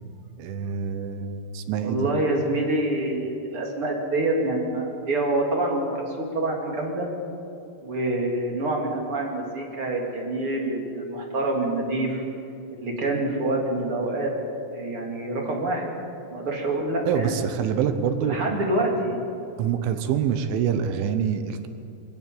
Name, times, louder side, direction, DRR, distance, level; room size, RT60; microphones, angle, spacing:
voice 1, 0.4-2.1 17.1-18.6 19.6-21.7, right 7 dB, 80° right, 9 dB, 3.5 m, -26 dB
voice 2, 1.8-7.1 7.8-12.2 12.8-14.3 14.7-15.9 16.3-17.3 18.2-19.2, right 2 dB, 35° right, 0 dB, 3.1 m, -26 dB
23.5 x 14.5 x 9.4 m, 2.7 s
omnidirectional pair, 5.6 m